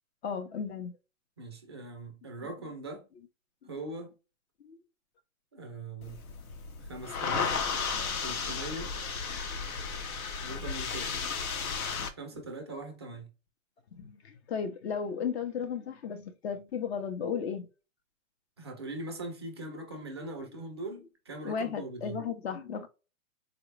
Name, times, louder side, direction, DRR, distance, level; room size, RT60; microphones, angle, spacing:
voice 1, 0.2-0.9 4.6-4.8 11.2-11.3 12.0-12.1 13.9-17.7 21.4-22.9, left 6 dB, 50° left, 0.7 m, -35 dB
voice 2, 1.4-3.1 3.7-4.1 5.5-6.2 6.8-7.6 8.2-9.0 10.4-11.3 12.2-13.3 18.6-22.2, right 2 dB, 20° right, 0.3 m, -41 dB
sound 1, 6.0-12.1, left 5 dB, 80° left, 0.9 m, -34 dB
3.9 x 2.1 x 3.2 m
hypercardioid pair, 145°, 42 cm